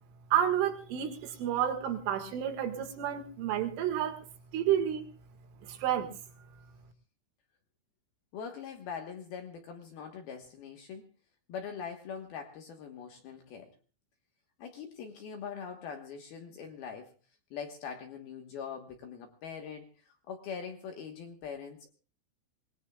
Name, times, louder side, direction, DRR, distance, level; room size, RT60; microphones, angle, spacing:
voice 1, 0.3-4.2 4.5-5.1 5.6-6.1, right 10 dB, 75° right, 6 dB, 4.1 m, -30 dB
voice 2, 8.3-11.1 11.5-13.7 14.6-17.1 17.5-21.9, left 6 dB, 70° left, 4 dB, 2.5 m, -42 dB
25.5 x 20.0 x 2.3 m, 0.35 s
omnidirectional pair, 6.0 m